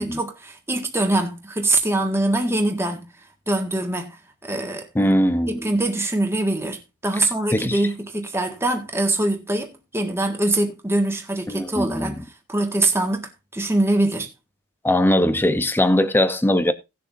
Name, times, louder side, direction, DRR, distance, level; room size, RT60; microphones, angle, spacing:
voice 1, 0.0-3.1 3.5-5.1 5.5-12.2 12.5-14.3, right 2 dB, 10° right, 1.7 m, -23 dB
voice 2, 4.9-5.7 7.5-7.8 11.5-12.1 14.8-16.7, left 1 dB, 10° left, 0.7 m, -20 dB
18.5 x 6.9 x 2.6 m
head